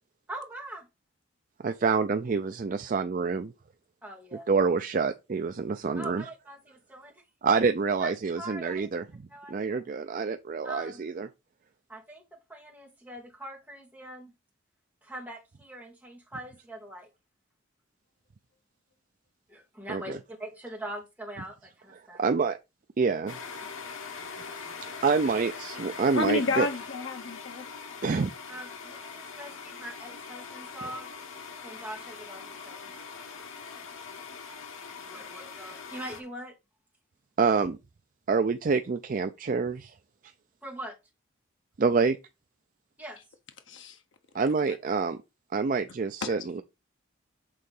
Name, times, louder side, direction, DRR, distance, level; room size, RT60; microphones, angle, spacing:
voice 1, 0.3-0.9 4.0-4.5 6.0-7.2 8.0-8.9 9.3-9.8 10.6-11.0 11.9-12.2 12.5-14.3 15.0-17.1 19.5-22.2 28.5-31.1 31.6-32.9 35.0-36.6 40.6-41.0 43.0-43.2, right 1 dB, 10° right, 2.1 m, -42 dB
voice 2, 1.6-3.5 4.5-6.3 7.4-9.0 9.5-11.3 19.9-20.2 22.2-22.6 23.0-23.4 25.0-26.7 28.0-28.3 30.8-30.9 37.4-37.8 38.3-39.9 41.8-42.2 44.3-45.2 45.5-46.6, right 5 dB, 40° right, 0.4 m, -27 dB
sound 1, 23.3-36.2, left 5 dB, 80° left, 1.4 m, -42 dB
voice 3, 26.1-27.7 43.7-44.0 44.7-44.8 46.2-46.4, left 3 dB, 65° left, 1.0 m, -30 dB
6.5 x 3.8 x 5.3 m
head